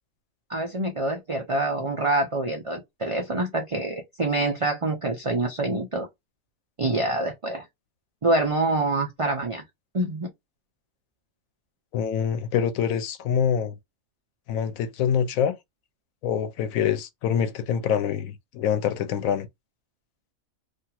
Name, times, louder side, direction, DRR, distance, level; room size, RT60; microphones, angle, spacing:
voice 1, 0.5-6.1 6.8-7.6 8.2-9.6 9.9-10.3, right 2 dB, 45° right, 0.4 m, -26 dB
voice 2, 11.9-13.8 14.5-15.5 16.2-19.5, left 8 dB, 80° left, 1.0 m, -25 dB
2.9 x 2.6 x 2.3 m
omnidirectional pair, 1.4 m